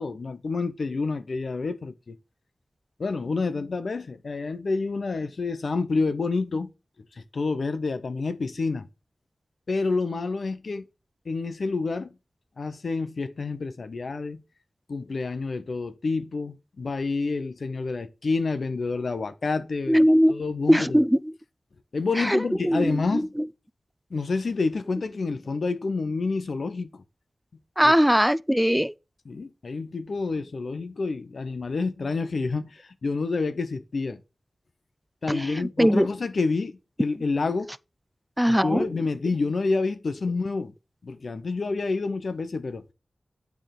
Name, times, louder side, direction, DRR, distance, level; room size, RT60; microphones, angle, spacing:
voice 1, 0.0-2.2 3.0-6.7 7.2-8.9 9.7-10.9 11.3-12.1 12.6-14.4 14.9-21.0 21.9-23.3 24.1-27.0 27.8-27.9 29.3-34.2 35.2-37.7 38.5-40.7 41.0-42.8, left 3 dB, 75° left, 0.7 m, -28 dB
voice 2, 19.9-20.4 20.7-21.2 22.2-23.2 27.8-28.9 35.3-36.1 38.4-38.9, equal, 5° right, 0.4 m, -20 dB
8.9 x 3.5 x 5.8 m
cardioid pair, 55°, 0 cm